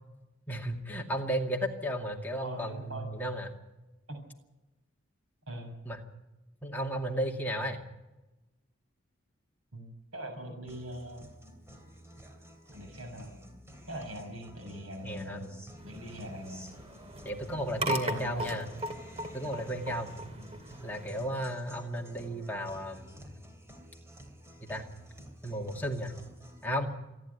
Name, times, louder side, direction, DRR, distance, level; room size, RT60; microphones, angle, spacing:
voice 1, 0.5-3.5 5.9-6.0 6.6-7.8 15.0-15.4 17.2-18.7 19.3-20.1 20.8-23.4 24.6-24.9 25.4-26.1 26.6-27.0, equal, 10° left, 0 dB, 2.3 m, -34 dB
voice 2, 2.4-3.1 4.1-4.2 5.5-5.7 9.7-11.3 12.7-13.4 13.9-15.5 15.8-16.7 18.0-18.5 20.3-20.6, equal, 80° right, 3 dB, 7.0 m, -42 dB
Guitar, 10.7-26.7, equal, 15° right, 2.9 m, -51 dB
sound 1, 15.8-21.3, right 1 dB, 30° right, 2.4 m, -38 dB
27.5 x 11.0 x 9.6 m, 1.0 s
head